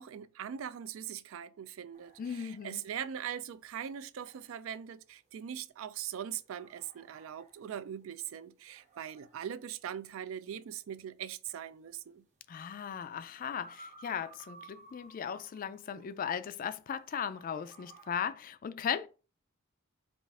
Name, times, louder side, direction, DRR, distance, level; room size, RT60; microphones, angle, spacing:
voice 1, 0.0-12.2, right 9 dB, 75° right, 0.3 m, -41 dB
sound 1, 1.9-16.9 17.3-18.1, right 3 dB, 35° right, 0.8 m, -58 dB
voice 2, 2.2-2.8 12.5-19.1, left 8 dB, 45° left, 0.3 m, -37 dB
5.2 x 2.4 x 3.5 m
head